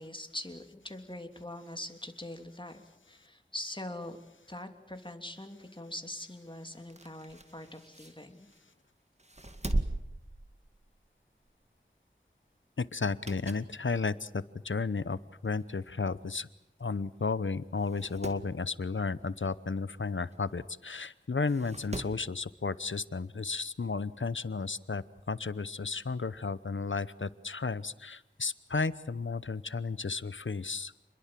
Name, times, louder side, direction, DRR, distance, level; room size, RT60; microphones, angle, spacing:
voice 1, 0.0-4.2 4.5-8.5, left 1 dB, 25° left, 5 dB, 3.0 m, -43 dB
sound 1, 6.8-8.7 9.2-11.1 11.4-11.7 12.9-13.8 14.2-14.3 15.2-15.3 15.6-15.7 15.8-15.9 16.8-17.0 17.3-17.4 17.8-18.5 20.3-20.4 21.4-22.3 23.6-23.7, right 1 dB, 35° right, 2.1 m, -39 dB
voice 2, 12.8-16.5 16.8-30.9, left 4 dB, 85° left, 17 dB, 0.9 m, -33 dB
28.5 x 21.5 x 7.6 m, 0.85 s
wide cardioid pair, 40°, 19 cm